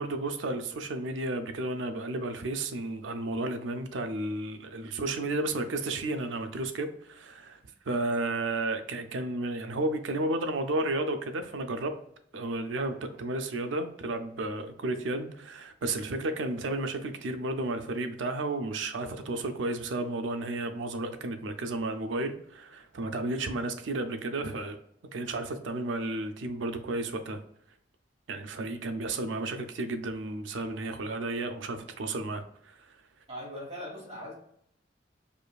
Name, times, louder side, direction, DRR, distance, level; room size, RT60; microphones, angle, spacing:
voice 1, 0.0-7.6 7.9-12.0 12.3-24.8 25.1-27.4 28.3-32.9, right 2 dB, 80° right, 0.5 m, -32 dB
voice 2, 33.3-34.4, equal, 35° right, 1.4 m, -40 dB
5.0 x 2.4 x 2.3 m
head